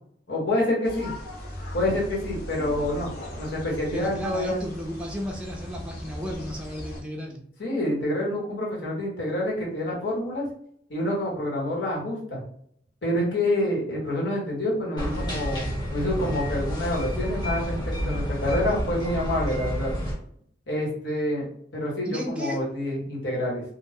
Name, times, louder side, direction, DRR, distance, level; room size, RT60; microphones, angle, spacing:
voice 1, 0.3-1.1 1.7-4.6 7.6-10.5 10.9-12.4 13.0-19.9 20.7-21.5 21.7-23.6, left 1 dB, 75° left, -4 dB, 1.2 m, -27 dB
sound 1, 0.8-7.0, left 1 dB, 55° left, 0.6 m, -38 dB
voice 2, 3.9-7.4 22.1-22.7, equal, 5° right, 0 dB, 0.4 m, -34 dB
Music doll, 15.0-20.1, equal, 25° left, 1.0 m, -29 dB
2.5 x 2.2 x 3.4 m, 0.66 s
head